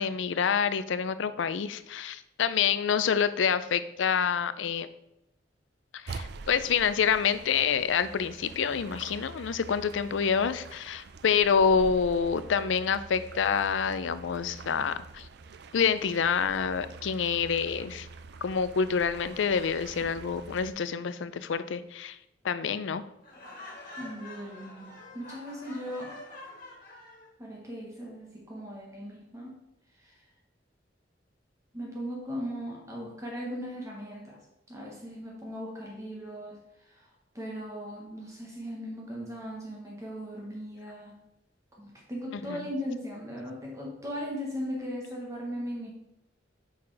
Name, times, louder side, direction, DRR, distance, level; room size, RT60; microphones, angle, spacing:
voice 1, 0.0-4.9 5.9-15.3 15.7-18.1 18.4-22.2 22.4-23.0 42.3-42.7, left 6 dB, 80° left, 14 dB, 0.4 m, -27 dB
sound 1, 6.1-20.7, right 4 dB, 60° right, 0.4 m, -45 dB
Laughter, 23.2-27.3, left 2 dB, 45° left, 1.9 m, -46 dB
voice 2, 24.0-26.2 27.4-29.6 30.0-30.1 31.7-34.4 34.7-36.6 36.9-37.1 37.3-41.2 41.8-45.9, equal, 15° right, -2 dB, 1.2 m, -38 dB
5.7 x 4.8 x 4.7 m, 0.86 s
head